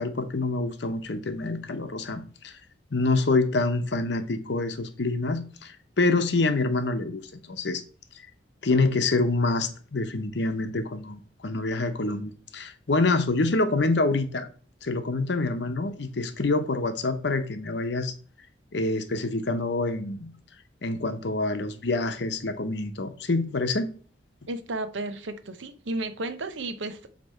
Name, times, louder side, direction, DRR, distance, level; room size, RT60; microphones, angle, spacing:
voice 1, 0.0-2.6 2.9-7.8 8.6-14.5 14.8-18.1 18.7-20.3 20.8-23.9, left 3 dB, 65° left, 0.8 m, -26 dB
voice 2, 24.5-27.1, right 2 dB, 85° right, 0.7 m, -33 dB
7.8 x 3.0 x 4.3 m
head